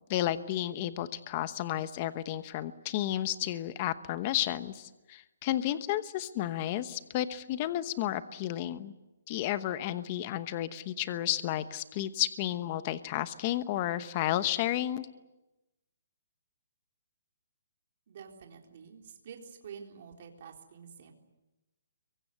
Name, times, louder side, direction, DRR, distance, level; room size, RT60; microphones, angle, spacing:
voice 1, 0.1-8.9 9.3-15.1, left 13 dB, 25° left, 13 dB, 1.0 m, -32 dB
voice 2, 18.1-21.1, right 7 dB, 45° right, 2 dB, 3.9 m, -48 dB
26.0 x 23.5 x 8.1 m, 1.0 s
hypercardioid pair, 170°, 0 cm